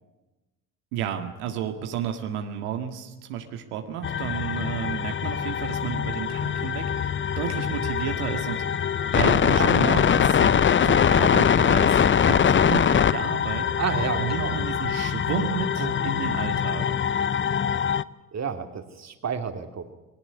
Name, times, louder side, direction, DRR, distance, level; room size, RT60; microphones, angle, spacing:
voice 1, 0.9-10.5 10.8-13.7 14.2-16.9, right 9 dB, 80° right, 5 dB, 2.0 m, -32 dB
sound 1, 4.0-18.0, left 8 dB, 30° left, 0.7 m, -23 dB
voice 2, 10.4-10.9 12.4-12.5 13.8-14.6 15.8-15.9 18.3-19.9, right 6 dB, 40° right, 6 dB, 2.7 m, -31 dB
20.0 x 18.5 x 9.9 m, 1.1 s
hypercardioid pair, 70°, 42 cm